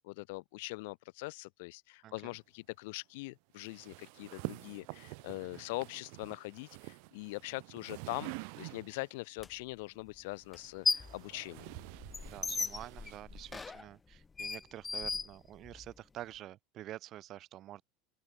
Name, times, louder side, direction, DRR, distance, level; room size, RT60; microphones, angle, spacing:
voice 1, 0.0-11.7, left 24 dB, 70° left, 2.6 m, -42 dB
voice 2, 2.0-2.3 5.4-5.6 12.2-17.8, right 13 dB, 45° right, 2.1 m, -48 dB
sound 1, 3.6-9.2 10.2-13.8, right 40 dB or more, 65° right, 1.2 m, -48 dB
sound 2, 9.4-9.5 10.5-11.2 11.6-15.9, left 4 dB, 20° left, 0.6 m, -37 dB
open air
hypercardioid pair, 90°, 0 cm